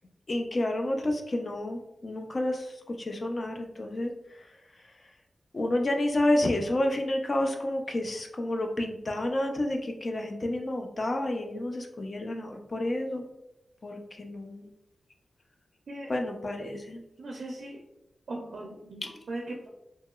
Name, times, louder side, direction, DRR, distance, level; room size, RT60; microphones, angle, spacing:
voice 1, 0.3-4.1 5.5-13.2 13.8-14.7 16.1-17.0 19.0-19.2, left 1 dB, 40° left, 3 dB, 0.4 m, -30 dB
voice 2, 17.2-17.8 18.3-19.7, right 2 dB, 70° right, 0 dB, 0.4 m, -39 dB
2.8 x 2.8 x 2.3 m, 0.87 s
wide cardioid pair, 130°, 0 cm